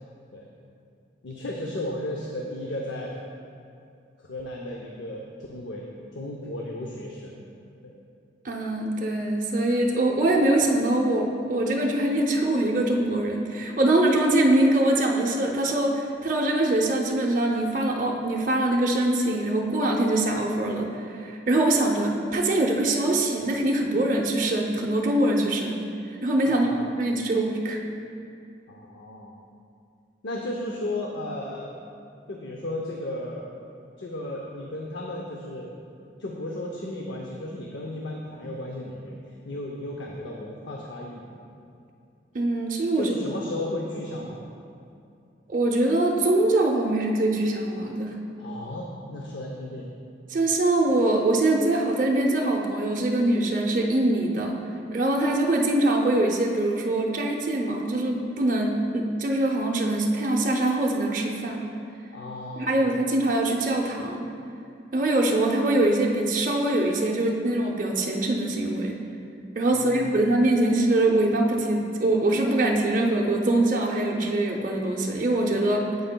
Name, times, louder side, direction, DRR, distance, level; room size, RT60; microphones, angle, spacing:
voice 1, 1.2-3.1 4.2-7.4 7.8-7.9 26.5-26.8 28.7-29.4 30.2-31.7 32.3-33.4 34.0-35.7 36.2-39.2 39.4-41.2 43.0-44.4 48.4-49.9 62.1-62.8 69.7-70.2, left 1 dB, 80° left, -1 dB, 0.6 m, -34 dB
voice 2, 8.4-25.8 26.2-26.7 27.0-27.8 42.3-43.1 45.5-48.2 50.3-54.5 54.9-61.6 62.6-64.3 64.9-69.0 69.5-75.9, right 1 dB, 45° right, -1 dB, 0.5 m, -23 dB
8.8 x 8.0 x 2.2 m, 2.5 s
head